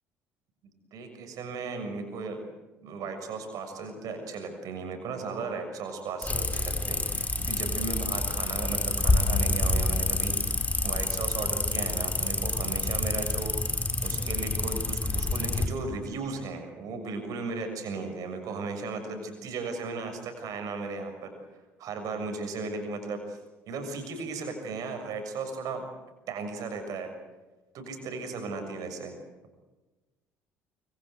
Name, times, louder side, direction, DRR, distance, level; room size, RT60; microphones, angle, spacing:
voice 1, 0.6-2.4 2.8-21.3 21.8-23.4 23.7-25.9 26.3-27.1 27.7-29.1, right 4 dB, 55° right, 5 dB, 6.5 m, -36 dB
sound 1, 6.2-15.6, left 2 dB, 20° left, 4.4 m, -28 dB
25.5 x 25.0 x 8.0 m, 1.2 s
figure-of-eight pair, 55°, 7 cm